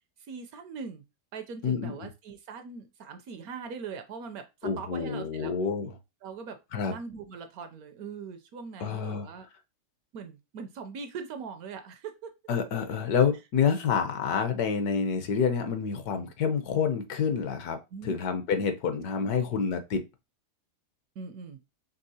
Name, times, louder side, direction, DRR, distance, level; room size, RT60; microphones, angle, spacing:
voice 1, 0.3-1.0 1.3-5.5 6.2-6.6 6.9-9.5 10.1-12.3 13.7-14.0 16.1-16.3 17.9-18.2 18.5-18.6 19.2-19.5 21.2-21.6, right 5 dB, 70° right, 1.0 m, -41 dB
voice 2, 1.6-2.1 4.6-5.9 6.7-6.9 8.8-9.3 12.5-17.8 18.0-20.0, left 6 dB, 70° left, 1.2 m, -28 dB
5.5 x 3.2 x 2.7 m
omnidirectional pair, 1.8 m